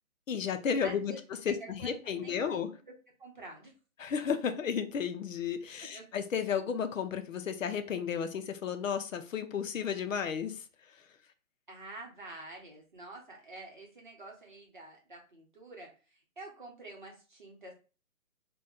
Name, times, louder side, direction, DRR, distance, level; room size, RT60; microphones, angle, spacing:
voice 1, 0.3-1.1 1.5-2.7 4.0-10.6, left 7 dB, 65° left, 0.6 m, -33 dB
voice 2, 0.8-1.2 1.6-2.7 3.2-3.7 5.9-6.0 11.7-15.9 16.4-17.7, right 2 dB, 35° right, 0.8 m, -47 dB
2.7 x 2.2 x 3.5 m
hypercardioid pair, 180°, 42 cm